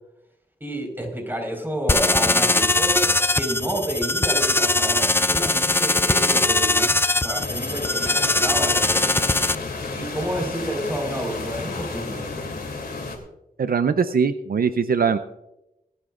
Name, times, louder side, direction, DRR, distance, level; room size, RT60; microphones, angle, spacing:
voice 1, 0.6-9.0 9.9-12.3, equal, 15° right, 2 dB, 4.6 m, -30 dB
sound 1, 1.9-9.5, left 2 dB, 15° left, 0.4 m, -21 dB
sound 2, 7.3-13.2, left 3 dB, 80° left, 2.9 m, -32 dB
voice 2, 13.6-15.2, right 6 dB, 70° right, 10 dB, 0.6 m, -21 dB
26.0 x 11.5 x 2.5 m, 0.90 s
wide cardioid pair, 90°, 16 cm